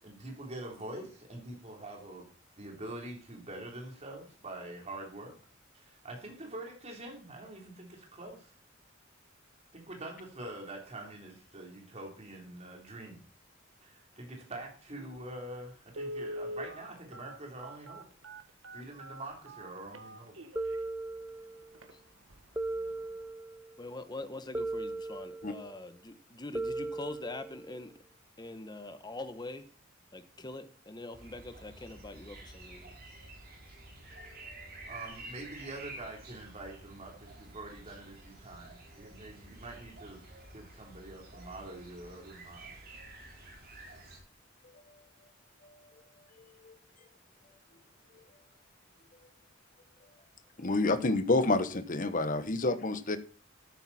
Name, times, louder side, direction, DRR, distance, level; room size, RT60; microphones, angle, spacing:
voice 1, 0.0-2.3 2.6-5.4 5.8-8.5 9.7-13.2 13.8-18.0 18.7-20.4 34.9-40.2 40.5-42.7, right 2 dB, 35° right, 0 dB, 3.6 m, -45 dB
Telephone, 15.2-15.3 15.9-20.8 21.3-21.4 21.7-21.9 22.3-22.6 22.9-23.0, equal, 85° right, 1.6 m, -42 dB
sound 1, 20.6-21.7 22.6-23.7 24.5-25.7 26.5-27.7, right 2 dB, 10° right, 0.5 m, -37 dB
voice 2, 23.8-28.0 28.4-29.7 30.1-32.9, left 2 dB, 20° left, 10 dB, 1.0 m, -43 dB
sound 2, 31.1-44.2, right 2 dB, 50° right, 4.0 m, -50 dB
voice 3, 50.6-53.2, left 2 dB, 40° left, 11 dB, 1.1 m, -28 dB
13.5 x 9.1 x 4.3 m, 0.41 s
head